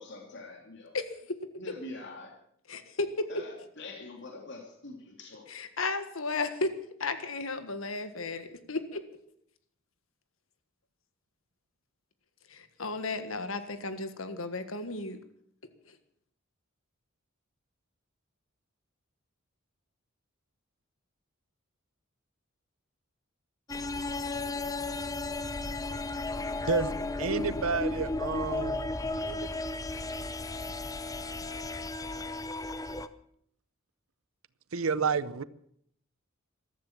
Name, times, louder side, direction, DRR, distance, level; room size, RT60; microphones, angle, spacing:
voice 1, 0.0-0.9 1.5-2.3 3.3-5.5, left 2 dB, 60° left, 2.8 m, -44 dB
voice 2, 0.9-1.4 2.7-3.3 5.5-6.7 7.0-9.0 12.5-15.2, left 3 dB, 80° left, 1.6 m, -34 dB
sound 1, 23.7-33.1, left 2 dB, 15° left, 0.7 m, -34 dB
voice 3, 26.7-29.5 34.7-35.4, right 5 dB, 90° right, 0.7 m, -31 dB
14.5 x 13.5 x 7.3 m
head